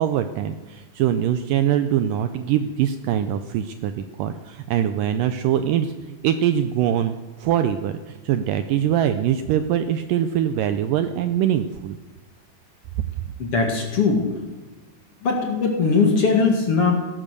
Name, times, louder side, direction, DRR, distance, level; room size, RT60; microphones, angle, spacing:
voice 1, 0.0-7.1 7.4-12.0, right 10 dB, 80° right, 9 dB, 2.0 m, -23 dB
voice 2, 13.4-14.2 15.2-16.9, left 4 dB, 45° left, 1 dB, 2.4 m, -20 dB
16.5 x 12.5 x 6.8 m, 1.2 s
omnidirectional pair, 4.4 m